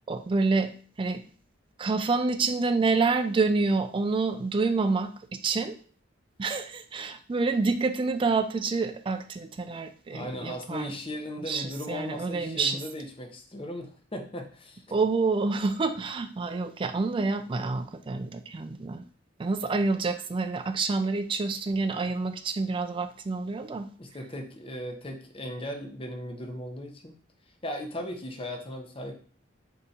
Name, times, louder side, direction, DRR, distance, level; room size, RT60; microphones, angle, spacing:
voice 1, 0.1-0.7 1.0-1.2 1.8-5.8 6.4-10.9 11.5-12.8 14.9-19.0 19.4-23.9, right 3 dB, 25° right, 8 dB, 0.3 m, -28 dB
voice 2, 10.1-14.8 24.0-27.2 27.6-29.1, left 1 dB, 30° left, 2 dB, 0.7 m, -37 dB
3.7 x 2.8 x 4.0 m, 0.43 s
head